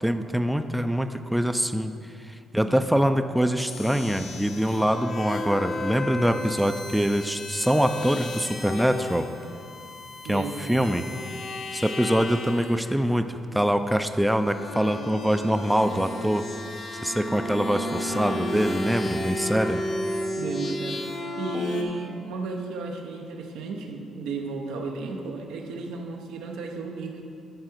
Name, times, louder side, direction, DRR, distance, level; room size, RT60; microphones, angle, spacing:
voice 1, 0.0-1.9 2.2-9.3 10.3-11.1 11.7-16.5 17.0-19.8, equal, 5° right, 8 dB, 0.4 m, -24 dB
sound 1, 3.6-13.1 13.9-21.8, left 1 dB, 60° left, 1.0 m, -33 dB
voice 2, 10.2-10.9 20.4-21.0 21.4-27.2, right 3 dB, 90° right, 2 dB, 0.8 m, -33 dB
11.5 x 4.8 x 4.5 m, 2.5 s
cardioid pair, 90°, 0 cm